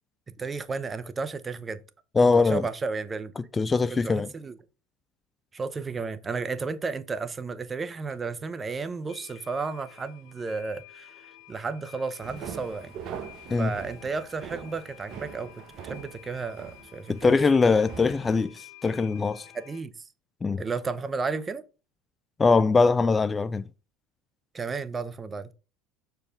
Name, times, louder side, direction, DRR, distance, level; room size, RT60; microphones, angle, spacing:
voice 1, 0.3-1.8 2.3-3.3 3.9-4.6 5.5-12.9 13.6-17.4 19.5-20.1 20.6-21.6 24.5-25.5, right 4 dB, 25° right, 0.7 m, -33 dB
voice 2, 2.2-2.7 3.6-4.3 13.5-13.7 17.1-19.5 20.4-20.6 22.4-23.6, left 4 dB, 20° left, 0.3 m, -22 dB
sound 1, 7.8-7.9 8.1-8.2 8.6-8.7 9.1-19.8, left 14 dB, 55° left, 1.3 m, -51 dB
sound 2, 12.2-18.5, right 7 dB, 50° right, 1.1 m, -42 dB
6.7 x 4.6 x 3.7 m
hypercardioid pair, 80°, 0 cm